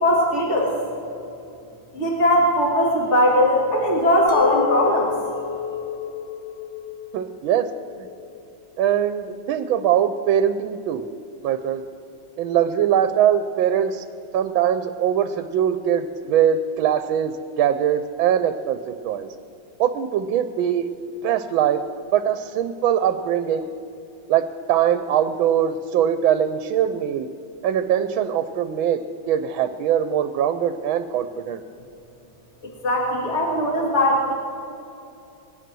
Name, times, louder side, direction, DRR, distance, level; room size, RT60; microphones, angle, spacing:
voice 1, 0.0-0.7 1.9-5.1 32.6-34.3, left 1 dB, 35° left, -3 dB, 2.4 m, -19 dB
Chink clink, 4.3-9.5, left 9 dB, 80° left, 0.6 m, -31 dB
voice 2, 7.1-7.7 8.0-8.1 8.8-11.1 11.4-11.8 12.4-14.0 14.3-19.3 19.8-20.9 21.2-21.8 22.1-23.7 24.3-27.3 27.6-29.0 29.3-31.6, right 9 dB, 85° right, 10 dB, 1.4 m, -22 dB
21.0 x 9.4 x 6.1 m, 2.7 s
omnidirectional pair, 2.2 m